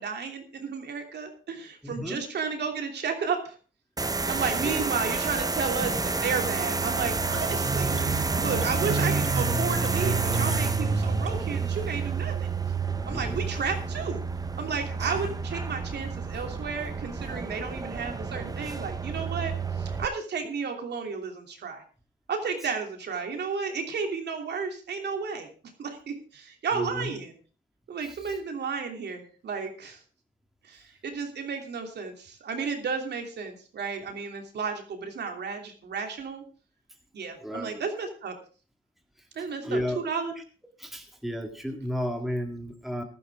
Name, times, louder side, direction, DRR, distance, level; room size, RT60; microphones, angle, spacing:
voice 1, 0.0-3.5 4.3-8.0 8.4-12.5 13.0-14.2 14.6-21.8 22.3-25.5 25.8-27.3 27.9-30.0 30.6-36.4 37.1-38.3 39.3-39.8 40.0-40.3, right 5 dB, 60° right, 4 dB, 3.0 m, -33 dB
voice 2, 1.8-2.2 4.6-4.8 13.1-13.4 26.7-27.1 28.0-28.4 37.4-37.9 39.2-40.1 40.8-43.0, equal, ahead, 4 dB, 1.9 m, -33 dB
sound 1, 4.0-20.1, right 4 dB, 20° right, 0.9 m, -30 dB
sound 2, 6.6-6.7 6.9-11.6, right 3 dB, 35° right, 1.4 m, -30 dB
15.0 x 11.5 x 3.6 m, 0.37 s
cardioid pair, 90°, 20 cm